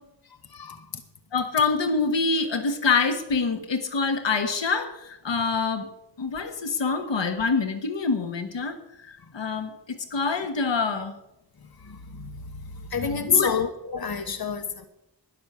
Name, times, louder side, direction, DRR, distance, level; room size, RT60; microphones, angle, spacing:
voice 1, 1.3-5.9 6.2-9.7 10.1-11.2 13.3-13.5, left 4 dB, 85° left, 1.3 m, -26 dB
voice 2, 11.9-12.3 12.9-14.8, left 6 dB, 55° left, 1.2 m, -27 dB
12.5 x 10.0 x 6.7 m
wide cardioid pair, 75°, 42 cm